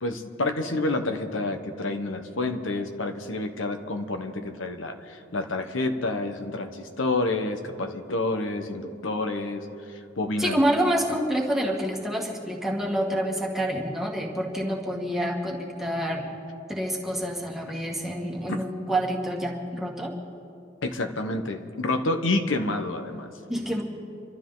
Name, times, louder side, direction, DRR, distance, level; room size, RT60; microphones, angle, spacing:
voice 1, 0.0-10.6 20.8-23.3, left 2 dB, 75° left, 6 dB, 1.1 m, -29 dB
voice 2, 10.4-16.3 16.7-20.1 23.5-23.8, right 1 dB, ahead, -2 dB, 1.9 m, -27 dB
28.0 x 12.5 x 4.0 m, 2.6 s
head